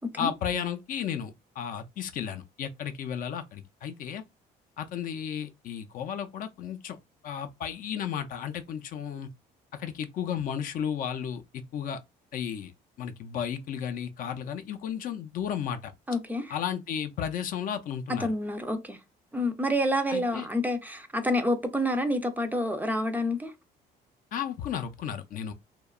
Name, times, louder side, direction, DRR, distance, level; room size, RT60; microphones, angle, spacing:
voice 1, 0.2-4.2 4.8-7.0 7.2-9.3 9.7-12.0 12.3-12.7 13.0-15.9 16.5-18.3 20.1-20.5 24.3-25.5, left 8 dB, 55° left, 0.4 m, -33 dB
voice 2, 16.1-16.5 18.2-19.0 19.3-23.5, left 1 dB, 10° right, 0.4 m, -28 dB
2.7 x 2.1 x 2.3 m
cardioid pair, 110°, 17 cm